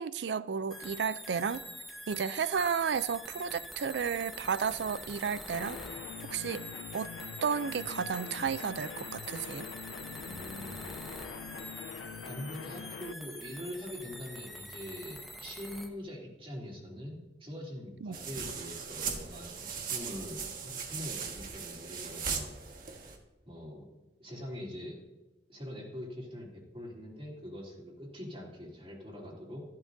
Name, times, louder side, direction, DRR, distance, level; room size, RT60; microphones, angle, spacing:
voice 1, 0.0-1.7 2.1-5.8 6.3-6.6 6.9-7.1 7.4-9.7 18.0-18.2, right 6 dB, 75° right, 0.4 m, -32 dB
sound 1, 0.7-15.9, equal, ahead, 1.2 m, -45 dB
sound 2, 5.5-13.1, left 7 dB, 90° left, 0.3 m, -44 dB
voice 2, 10.2-10.9 12.2-22.5 23.4-23.9 24.2-25.0 25.5-29.6, left 1 dB, 35° right, 3.1 m, -43 dB
sound 3, 18.1-23.2, right 6 dB, 55° right, 1.6 m, -38 dB
14.5 x 11.5 x 2.7 m
head